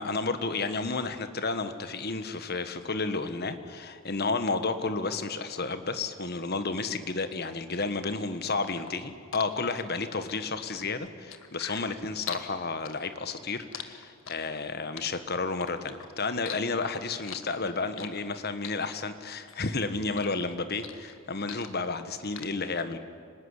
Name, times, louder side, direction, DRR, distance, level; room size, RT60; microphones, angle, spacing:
voice 1, 0.0-23.0, left 3 dB, 50° left, 10 dB, 1.4 m, -32 dB
sound 1, 8.1-12.5 12.8-14.6 15.0-16.1 16.4-18.3 18.6-19.7 20.0-22.0 22.4-22.5, left 9 dB, 65° left, 1.6 m, -42 dB
25.0 x 19.5 x 9.8 m, 2.2 s
head